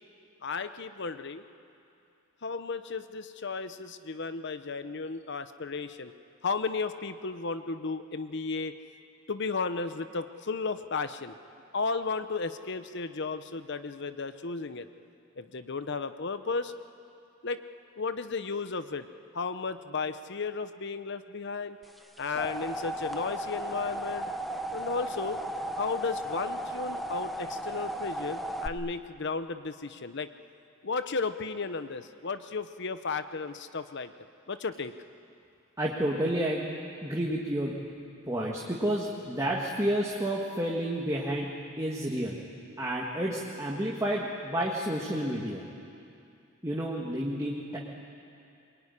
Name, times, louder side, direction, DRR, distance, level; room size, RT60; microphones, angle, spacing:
voice 1, 0.4-1.4 2.4-6.1 6.4-8.7 9.3-11.3 11.7-14.9 15.4-16.7 17.4-17.6 18.0-19.1 19.3-21.8 22.2-24.3 24.7-25.4 25.8-30.3 30.8-34.1 34.5-34.9, left 4 dB, 55° left, 11 dB, 0.9 m, -34 dB
sound 1, 22.0-28.7, equal, ahead, 0.9 m, -35 dB
voice 2, 35.8-36.7 37.0-37.8 38.3-42.4 42.8-45.6 46.6-47.8, right 1 dB, 15° right, -3 dB, 1.9 m, -30 dB
23.0 x 22.0 x 10.0 m, 2.5 s
head